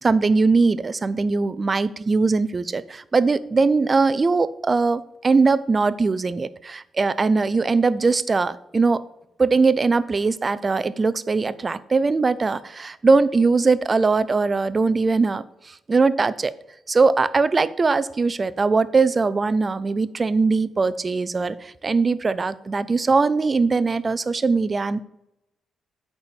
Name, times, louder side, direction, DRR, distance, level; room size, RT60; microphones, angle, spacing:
voice 1, 0.0-9.0 9.4-16.5 16.9-25.0, right 4 dB, 25° right, 15 dB, 0.4 m, -21 dB
8.7 x 4.3 x 6.9 m, 0.84 s
cardioid pair, 160°, 0 cm